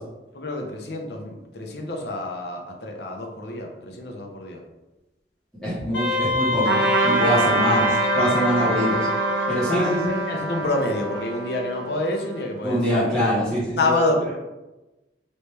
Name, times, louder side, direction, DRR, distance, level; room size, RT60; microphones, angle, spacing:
voice 1, 0.3-4.6 9.7-12.8 13.8-14.3, left 2 dB, 60° left, 1 dB, 0.6 m, -27 dB
voice 2, 5.6-9.1 9.5-10.1 12.6-13.8, equal, 5° left, -13 dB, 1.5 m, -24 dB
Wind instrument woodwind instrument, 5.9-10.1, left 1 dB, 80° left, 1.0 m, -25 dB
Trumpet, 6.6-12.5, right 3 dB, 75° right, 0.5 m, -26 dB
3.1 x 3.0 x 3.3 m, 1.1 s
head